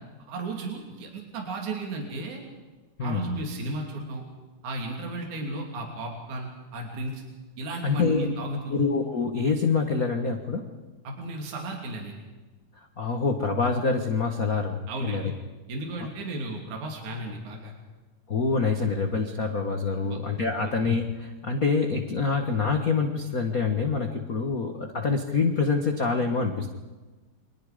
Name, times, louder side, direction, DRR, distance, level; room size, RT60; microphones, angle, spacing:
voice 1, 0.3-2.4 3.0-4.2 4.6-7.2 7.6-8.8 11.0-12.2 14.9-15.3 15.7-17.7 20.0-20.2 20.6-20.7, right 2 dB, 60° right, 1 dB, 4.2 m, -34 dB
voice 2, 7.8-8.3 8.7-10.7 12.8-15.3 18.3-26.7, left 4 dB, 45° left, 4 dB, 1.2 m, -26 dB
30.0 x 24.5 x 5.1 m, 1.2 s
omnidirectional pair, 3.9 m